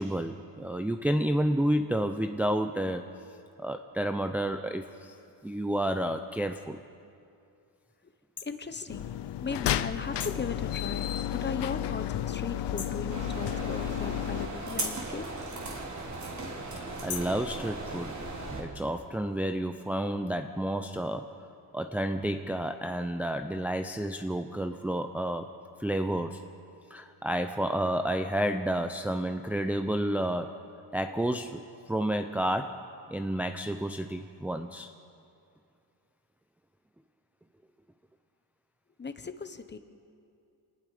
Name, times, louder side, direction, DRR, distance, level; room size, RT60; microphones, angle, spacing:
voice 1, 0.0-3.1 3.6-5.1 5.4-6.8 17.0-18.2 18.6-21.4 21.7-25.5 25.8-26.4 26.9-30.6 30.9-32.8 33.1-34.9, right 1 dB, 5° right, 6 dB, 0.6 m, -30 dB
sound 1, 8.4-8.5 10.2-10.5 12.8-13.1 14.8-15.1 17.1-17.4, left 6 dB, 40° left, 1.7 m, -39 dB
voice 2, 8.4-9.1 9.4-15.4 39.0-39.8, left 4 dB, 25° left, 10 dB, 1.1 m, -37 dB
sound 2, 8.9-14.5, left 11 dB, 60° left, 0.8 m, -32 dB
sound 3, 13.1-18.6, right 2 dB, 35° right, 3.6 m, -37 dB
28.0 x 19.0 x 5.0 m, 2.5 s
cardioid pair, 115°, 47 cm